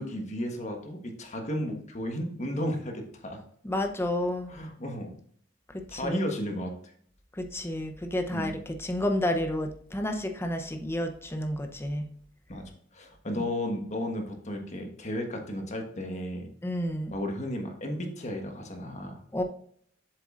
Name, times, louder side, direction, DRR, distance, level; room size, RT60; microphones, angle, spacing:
voice 1, 0.0-3.4 4.5-5.2 5.9-6.9 8.3-8.5 12.5-16.5 17.1-19.2, left 1 dB, 40° left, 3 dB, 1.3 m, -34 dB
voice 2, 3.6-4.5 5.7-6.2 7.3-12.1 13.3-13.4 16.6-17.1 19.3-19.4, left 1 dB, 15° left, 5 dB, 0.7 m, -30 dB
7.7 x 7.2 x 2.5 m, 0.63 s
head